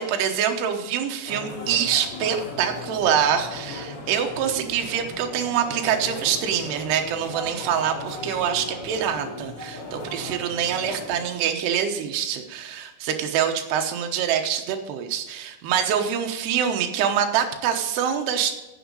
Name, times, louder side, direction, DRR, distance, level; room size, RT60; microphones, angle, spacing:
voice 1, 0.0-18.5, right 8 dB, 75° right, 4 dB, 2.9 m, -25 dB
sound 1, 1.2-11.2, left 2 dB, 35° left, 3.0 m, -37 dB
10.0 x 7.1 x 6.9 m, 1.1 s
omnidirectional pair, 5.1 m